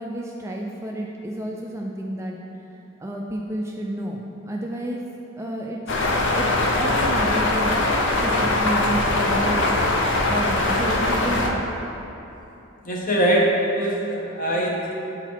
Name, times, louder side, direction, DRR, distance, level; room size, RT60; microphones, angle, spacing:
voice 1, 0.0-2.4 3.0-5.0 5.4-6.0 6.3-7.7 8.2-9.7 10.3-11.6, right 1 dB, 15° right, -1 dB, 0.3 m, -30 dB
sound 1, 5.9-11.5, left 2 dB, 55° left, 0.6 m, -21 dB
voice 2, 12.8-14.9, right 1 dB, 40° left, -2 dB, 1.0 m, -22 dB
8.0 x 4.0 x 4.4 m, 2.9 s
head